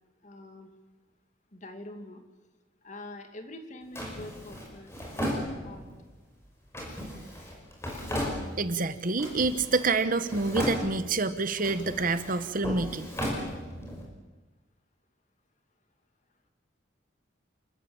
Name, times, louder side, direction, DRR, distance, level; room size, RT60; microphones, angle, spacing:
voice 1, 0.2-0.7 1.5-2.2 2.8-4.9 5.6-5.8, left 1 dB, 40° left, 6 dB, 2.5 m, -44 dB
Drawer open or close, 4.0-6.0 6.7-8.8 9.2-10.0 10.2-11.2 11.6-14.0, equal, 15° left, 5.4 m, -35 dB
voice 2, 8.6-13.1, right 3 dB, 45° right, 12 dB, 1.1 m, -27 dB
28.5 x 14.0 x 8.8 m, 1.2 s
head